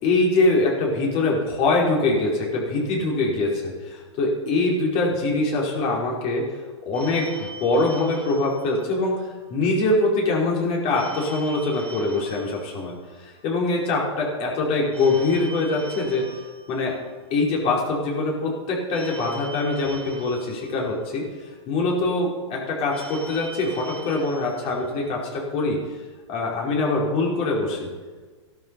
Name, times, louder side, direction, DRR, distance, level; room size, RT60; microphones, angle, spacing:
voice 1, 0.0-6.4 6.8-9.1 9.5-16.2 16.7-16.9 17.3-21.2 21.7-25.8 26.3-27.9, left 2 dB, 40° left, -2 dB, 5.0 m, -23 dB
Telephone, 6.9-9.4 10.9-13.4 14.9-17.4 18.9-21.4 22.9-25.4, right 2 dB, 10° left, 3.2 m, -42 dB
15.0 x 12.0 x 5.5 m, 1.4 s
hypercardioid pair, 130°, 16 cm